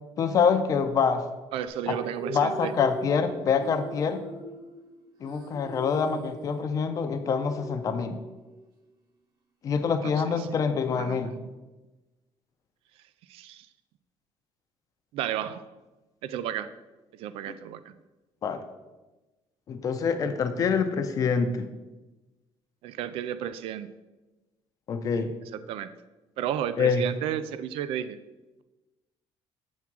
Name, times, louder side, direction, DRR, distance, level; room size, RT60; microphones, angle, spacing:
voice 1, 0.2-1.3 1.9-2.0 2.3-4.2 5.2-8.2 9.6-11.3 17.5-17.6 18.4-18.6 19.7-21.7 24.9-25.3 26.8-27.0, left 6 dB, 35° left, 8 dB, 0.6 m, -26 dB
voice 2, 1.5-2.7 10.0-10.1 10.4-10.6 10.9-11.4 13.3-13.7 15.1-15.6 16.2-16.7 17.2-17.8 22.8-23.9 25.7-25.9 26.4-28.2, right 10 dB, 65° right, 13 dB, 0.4 m, -32 dB
sound 1, 1.7-8.7, right 2 dB, 40° right, 1.0 m, -41 dB
7.2 x 3.5 x 5.9 m, 1.1 s
cardioid pair, 175°, 10 cm